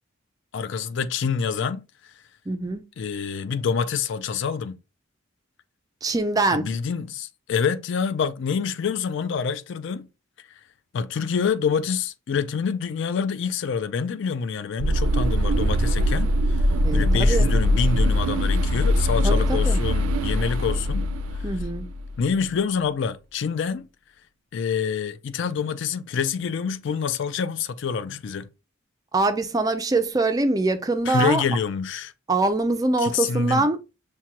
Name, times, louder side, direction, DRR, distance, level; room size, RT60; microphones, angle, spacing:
voice 1, 0.5-2.1 3.0-4.8 6.5-10.1 10.4-10.5 10.9-16.6 16.9-21.1 21.3-21.4 22.2-23.9 24.5-28.5 31.1-32.1 33.0-33.7, left 6 dB, 55° left, 0.3 m, -27 dB
voice 2, 2.5-2.8 6.0-6.7 16.8-17.5 19.2-19.8 21.4-21.9 29.1-31.4 32.3-33.9, right 2 dB, 15° right, 0.3 m, -23 dB
sound 1, 14.8-22.2, equal, 80° right, 0.4 m, -22 dB
sound 2, 15.5-19.3, equal, 40° left, 2.1 m, -42 dB
6.0 x 2.2 x 2.8 m
head